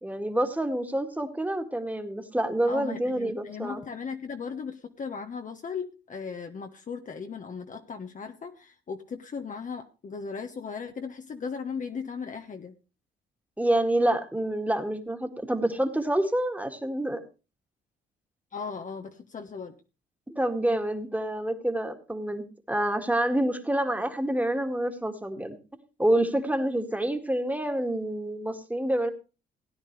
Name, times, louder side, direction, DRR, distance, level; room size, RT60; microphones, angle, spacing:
voice 1, 0.0-3.8 13.6-17.2 20.3-25.6 26.0-29.1, right 1 dB, 10° right, 6 dB, 2.0 m, -27 dB
voice 2, 2.7-12.7 18.5-19.7, left 5 dB, 40° left, 5 dB, 1.2 m, -37 dB
17.0 x 9.9 x 3.3 m, 0.32 s
cardioid pair, 90°, 20 cm